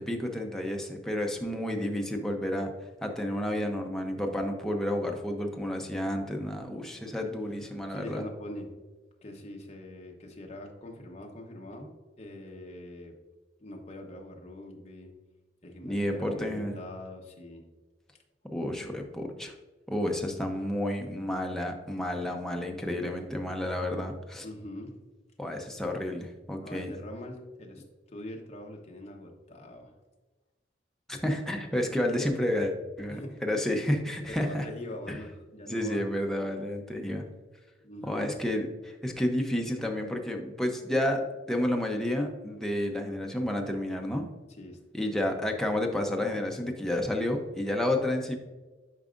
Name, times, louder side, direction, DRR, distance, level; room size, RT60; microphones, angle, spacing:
voice 1, 0.0-2.7 3.0-8.2 15.8-16.7 18.5-19.5 19.9-24.4 25.4-26.9 31.1-34.7 35.1-35.2 35.7-37.2 38.0-44.3 44.9-48.4, left 1 dB, 5° left, 1 dB, 0.7 m, -30 dB
voice 2, 7.9-8.7 9.2-13.1 13.6-15.1 15.6-17.7 24.4-25.0 26.6-29.9 33.1-33.4 34.3-36.0 37.8-38.4 44.6-44.8, left 1 dB, 35° left, 1 dB, 1.0 m, -43 dB
11.0 x 4.7 x 2.5 m, 1.2 s
head